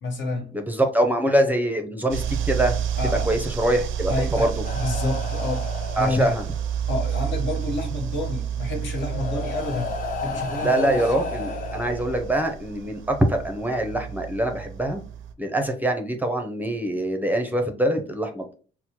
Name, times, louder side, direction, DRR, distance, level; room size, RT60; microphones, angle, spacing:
voice 1, 0.0-0.5 3.0-3.3 4.1-6.4 6.9-11.1, left 2 dB, 70° left, 1.0 m, -29 dB
voice 2, 0.5-2.8 3.3-4.5 6.0-6.4 10.6-15.0 15.4-18.5, right 1 dB, 10° right, 0.5 m, -24 dB
sound 1, 2.1-15.3, right 8 dB, 85° right, 0.4 m, -30 dB
sound 2, 4.6-6.8 8.1-8.2 8.9-12.6 13.6-13.8, left 4 dB, 45° left, 0.6 m, -33 dB
4.3 x 2.0 x 2.7 m
cardioid pair, 90°, 20 cm